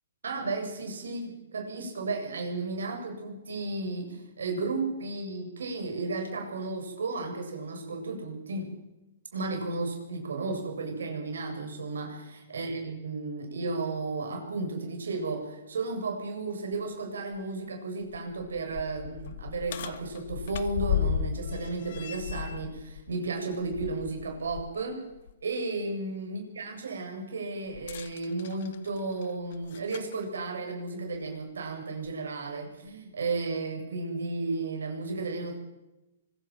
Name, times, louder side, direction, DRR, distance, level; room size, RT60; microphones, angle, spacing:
voice 1, 0.2-8.7 9.3-25.1 25.4-35.6, right 3 dB, 90° right, 3 dB, 7.9 m, -34 dB
sound 1, 16.7-16.8 17.3-17.4 18.0-24.7 25.1-25.3 27.7-30.1 31.1-31.2 32.0-32.1, left 9 dB, 60° left, 1.8 m, -35 dB
24.5 x 16.0 x 7.6 m, 0.96 s
hypercardioid pair, 145°, 0 cm